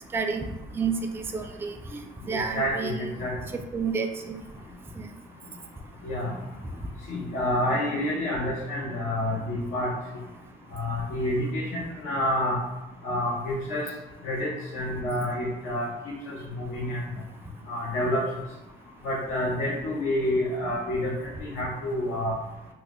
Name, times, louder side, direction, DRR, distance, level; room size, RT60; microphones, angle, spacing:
voice 1, 0.1-0.5 0.7-2.0 2.2-3.0 3.7-4.4 5.0-5.1, right 5 dB, 10° right, 5 dB, 0.3 m, -30 dB
voice 2, 2.3-3.3 6.0-6.3 7.1-9.9 10.7-12.6 13.0-13.9 14.2-15.9 16.3-17.0 17.7-18.2 19.0-21.1 21.4-22.4, left 1 dB, 80° left, -4 dB, 0.7 m, -28 dB
3.1 x 2.1 x 3.5 m, 0.94 s
cardioid pair, 90°, 20 cm